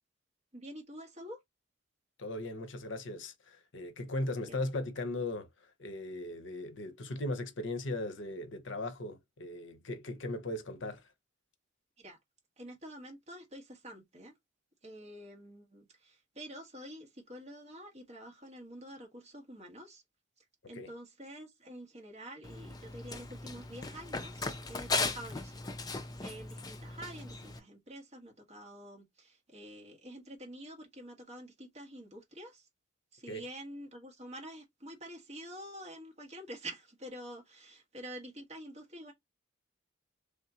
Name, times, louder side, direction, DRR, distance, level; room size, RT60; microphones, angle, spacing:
voice 1, 0.5-1.4 4.5-4.6 12.0-12.2 12.6-14.3 14.8-20.0 20.7-25.6 26.2-32.6 33.1-39.1, right 1 dB, 35° right, 1.4 m, -48 dB
voice 2, 2.2-5.5 5.8-11.0 20.7-20.9 33.3-33.5, left 2 dB, 65° left, 0.8 m, -38 dB
Run, 22.4-27.6, left 3 dB, 20° left, 0.4 m, -38 dB
3.6 x 3.3 x 2.8 m
head